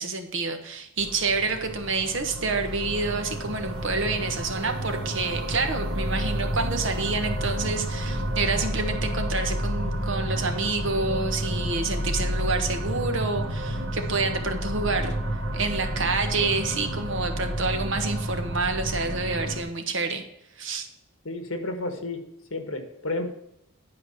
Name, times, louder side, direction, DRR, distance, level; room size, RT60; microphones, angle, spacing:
voice 1, 0.0-15.2 15.5-20.2 20.6-20.9, right 3 dB, 55° right, 6 dB, 1.2 m, -28 dB
sound 1, 1.0-19.6, right 1 dB, 80° right, 2.1 m, -30 dB
voice 2, 21.2-22.2 22.5-23.3, left 2 dB, 65° left, 6 dB, 1.5 m, -31 dB
10.5 x 4.7 x 7.1 m, 0.81 s
head